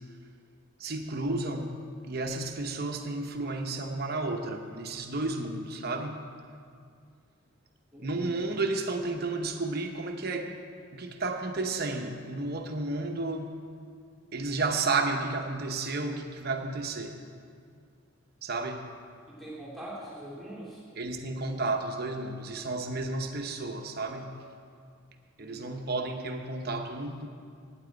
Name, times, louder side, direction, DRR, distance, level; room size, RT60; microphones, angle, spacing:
voice 1, 0.8-1.7 2.1-6.2 8.0-10.6 10.9-13.5 14.3-17.2 18.4-18.8 21.0-24.3 25.4-27.3, right 3 dB, 45° right, 4 dB, 0.8 m, -32 dB
voice 2, 7.9-8.3 19.3-20.8 25.4-25.8, right 1 dB, ahead, -8 dB, 2.6 m, -43 dB
9.1 x 8.9 x 9.0 m, 2.3 s
head